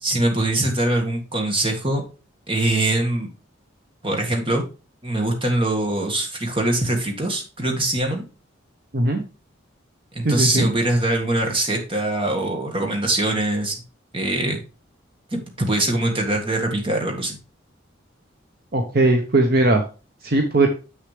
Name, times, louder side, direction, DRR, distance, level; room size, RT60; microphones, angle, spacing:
voice 1, 0.0-2.0 2.5-3.3 4.0-4.6 5.0-8.2 10.1-13.8 14.1-14.6 15.3-17.4, right 1 dB, 25° right, 2 dB, 1.7 m, -23 dB
voice 2, 10.2-10.7 18.7-19.8 20.2-20.7, right 2 dB, 45° right, 4 dB, 0.9 m, -19 dB
7.3 x 6.6 x 3.3 m, 0.33 s
head